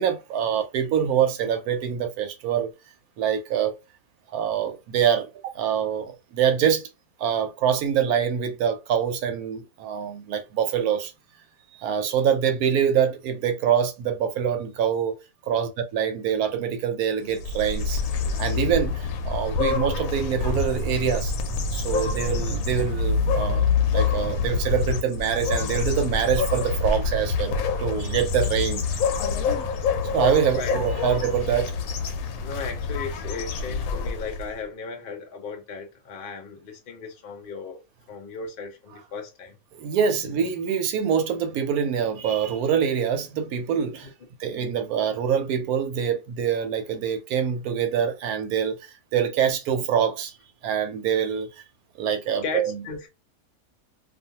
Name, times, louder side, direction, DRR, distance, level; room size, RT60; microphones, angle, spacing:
voice 1, 0.0-2.7 3.2-3.8 4.3-5.3 5.5-6.9 7.2-11.1 11.8-15.2 15.5-18.0 18.4-21.3 21.7-23.7 23.9-28.9 30.1-31.7 39.7-44.1 44.4-50.3 50.6-51.6 52.0-52.8, right 8 dB, 75° right, 1.0 m, -25 dB
sound 1, 17.3-34.6, left 5 dB, 70° left, 1.0 m, -26 dB
voice 2, 32.4-37.8 38.1-39.6 52.4-53.1, left 5 dB, 50° left, 0.6 m, -36 dB
2.5 x 2.4 x 2.7 m
omnidirectional pair, 1.7 m